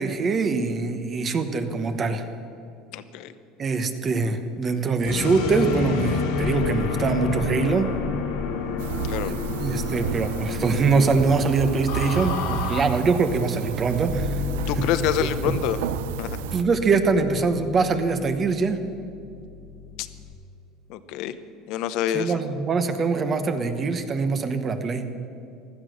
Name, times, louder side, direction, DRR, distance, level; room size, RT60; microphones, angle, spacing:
voice 1, 0.0-2.2 3.6-7.9 9.2-14.3 14.8-14.9 15.2-15.5 16.5-18.8 22.1-25.1, right 4 dB, 30° right, 8 dB, 1.1 m, -23 dB
voice 2, 2.9-3.3 9.1-9.3 14.7-15.8 16.2-16.4 20.0-20.1 20.9-21.3 21.7-22.4, left 10 dB, 65° left, 12 dB, 0.9 m, -27 dB
sound 1, 5.1-12.8, left 5 dB, 90° left, 2.4 m, -28 dB
sound 2, 8.8-16.6, right 13 dB, 85° right, 0.5 m, -32 dB
Bass guitar, 14.1-20.3, left 6 dB, ahead, 1.6 m, -35 dB
16.0 x 12.5 x 6.5 m, 2.6 s
supercardioid pair, 135°, 0 cm